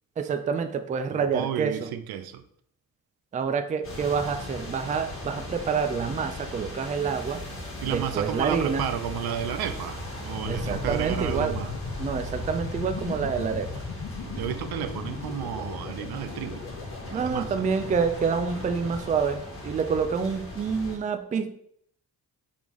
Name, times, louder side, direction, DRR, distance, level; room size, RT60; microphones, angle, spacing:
voice 1, 0.2-1.9 3.3-7.4 7.8-8.9 10.5-11.6 12.0-13.8 17.1-21.5, right 6 dB, 20° right, 9 dB, 0.3 m, -27 dB
voice 2, 1.1-2.4 7.8-11.7 14.4-16.7 17.1-17.5 18.6-18.9, right 10 dB, 75° right, 10 dB, 0.5 m, -32 dB
sound 1, 3.8-21.0, left 2 dB, 35° left, 1.4 m, -39 dB
sound 2, 10.4-19.2, left 4 dB, 65° left, 0.8 m, -37 dB
3.7 x 3.6 x 3.1 m, 0.68 s
cardioid pair, 80°, 38 cm